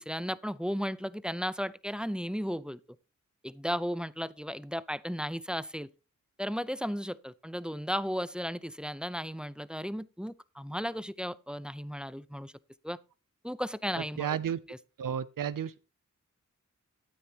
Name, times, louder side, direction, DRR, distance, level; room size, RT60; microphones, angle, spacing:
voice 1, 0.0-2.8 3.4-5.9 6.4-12.5 12.8-13.0 13.4-14.3 14.7-14.8, equal, 5° right, 0.6 m, -35 dB
voice 2, 14.2-14.6 15.0-15.8, right 9 dB, 85° right, 0.6 m, -32 dB
12.0 x 9.5 x 2.9 m
cardioid pair, 50°, 32 cm